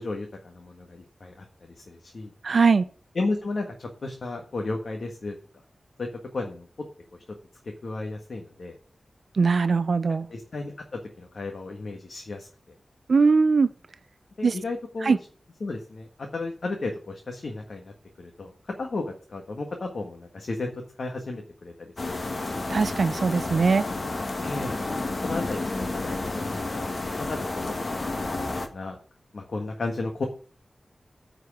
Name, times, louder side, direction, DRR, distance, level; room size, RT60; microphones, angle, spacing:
voice 1, 0.0-2.3 3.1-5.3 6.0-6.6 7.6-8.7 10.3-12.5 14.4-15.2 15.6-17.9 18.2-20.7 21.0-22.5 24.4-24.8 25.2-26.9 27.3-27.6 27.9-28.9 29.3-30.3, left 3 dB, 65° left, 1.5 m, -34 dB
voice 2, 2.4-2.9 9.4-10.3 13.1-13.7 14.4-14.5 15.0-15.2 22.7-23.8, right 4 dB, 70° right, 0.4 m, -21 dB
sound 1, 22.0-28.7, left 2 dB, 50° left, 1.5 m, -31 dB
9.7 x 4.9 x 7.7 m
wide cardioid pair, 115°, 0 cm